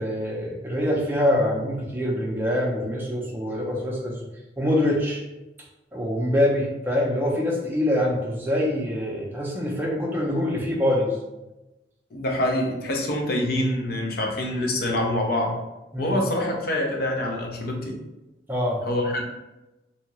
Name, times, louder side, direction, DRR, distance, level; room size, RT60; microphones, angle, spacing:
voice 1, 0.0-4.2 4.6-5.2 5.9-11.1 15.9-16.1 18.5-18.8, left 1 dB, 10° right, -3 dB, 0.5 m, -24 dB
voice 2, 12.1-15.6 16.0-18.0 18.9-19.2, left 1 dB, 55° left, 0 dB, 0.6 m, -25 dB
2.7 x 2.4 x 2.9 m, 1.0 s
head